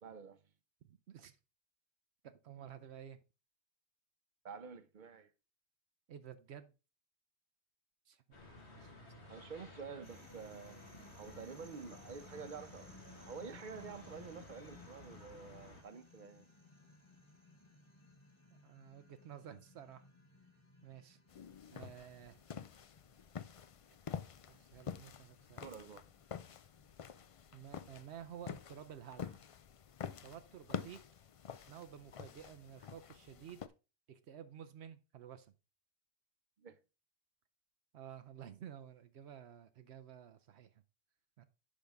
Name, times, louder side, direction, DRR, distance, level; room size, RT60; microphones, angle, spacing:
voice 1, 0.0-0.4 4.4-5.3 9.3-10.8 11.2-16.5 25.6-26.0 36.6-36.8, right 5 dB, 50° right, 0.8 m, -49 dB
voice 2, 0.8-1.3 2.2-3.2 6.1-6.7 8.1-8.2 8.8-8.9 9.2-9.5 18.5-20.1 20.8-21.2 21.7-22.4 23.9-24.0 24.5-25.8 27.5-29.4 30.2-31.0 31.7-33.6 34.1-35.5 37.9-40.8 41.4-41.5, right 9 dB, 80° right, 0.9 m, -52 dB
sound 1, 8.3-15.8, left 2 dB, 80° left, 2.0 m, -55 dB
sound 2, 10.0-28.5, left 2 dB, 25° left, 1.5 m, -62 dB
sound 3, 21.3-33.7, left 7 dB, 60° left, 0.3 m, -48 dB
10.0 x 5.3 x 3.5 m
omnidirectional pair, 1.1 m